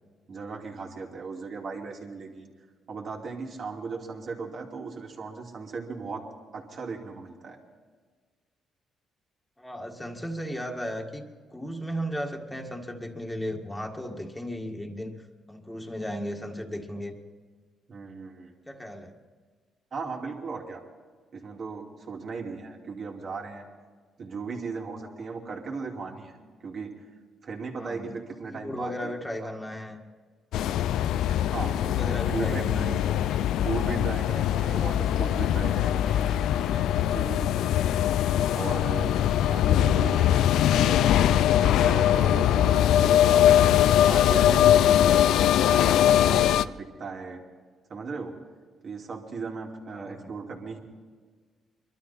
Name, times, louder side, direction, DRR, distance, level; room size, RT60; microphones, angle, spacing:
voice 1, 0.3-2.5 2.9-6.2 6.5-7.6 17.9-18.5 19.9-20.8 21.3-23.7 24.2-26.9 27.4-29.1 29.4-29.6 31.5-31.8 32.3-32.6 33.6-38.1 38.5-41.1 41.6-45.2 45.7-47.4 47.9-48.3 48.8-50.8, right 4 dB, 50° right, 1 dB, 2.7 m, -37 dB
voice 2, 9.6-17.1 18.7-19.2 27.8-28.2 28.5-30.0 31.6-33.0 49.9-50.3, equal, 10° left, 1 dB, 1.9 m, -35 dB
sound 1, 30.5-46.7, left 11 dB, 85° left, 0.4 m, -22 dB
23.0 x 12.5 x 4.3 m, 1.5 s
cardioid pair, 90°, 0 cm